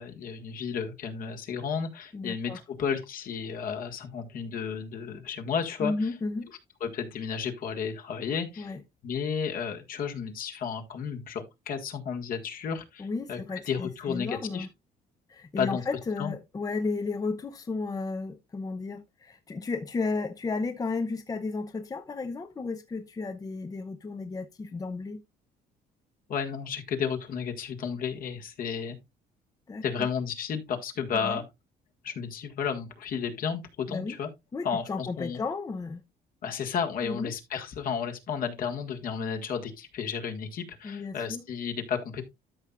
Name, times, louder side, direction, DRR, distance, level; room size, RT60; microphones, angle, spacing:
voice 1, 0.0-6.1 6.8-8.7 9.0-14.7 15.6-15.8 16.2-16.3 26.3-29.0 29.8-31.4 32.0-34.3 34.6-35.4 36.4-42.2, left 6 dB, 55° left, 1.7 m, -32 dB
voice 2, 2.1-2.6 5.8-6.5 8.6-8.8 13.0-14.7 15.3-25.2 29.7-30.1 31.1-31.4 33.9-34.2 34.5-36.0 37.0-37.3 40.8-41.4, left 3 dB, 20° left, 0.7 m, -33 dB
13.0 x 5.6 x 2.4 m
cardioid pair, 110°, 17 cm